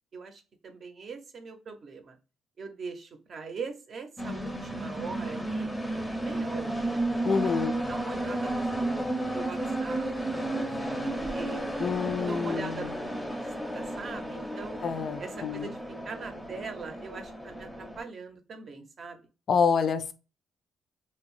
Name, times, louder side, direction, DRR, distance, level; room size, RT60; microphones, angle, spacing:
voice 1, 0.1-2.2 2.6-5.7 6.2-7.1 7.4-10.1 10.3-10.7 10.9-11.6 12.2-13.4 13.7-14.8 15.2-15.8 16.1-19.2, right 4 dB, 50° right, 0.6 m, -41 dB
sound 1, 4.2-18.0, right 1 dB, 5° left, 0.5 m, -33 dB
voice 2, 7.3-7.8 11.8-13.0 14.8-15.7 19.5-20.1, left 6 dB, 55° left, 0.4 m, -27 dB
2.8 x 2.0 x 3.0 m
cardioid pair, 90°, 0 cm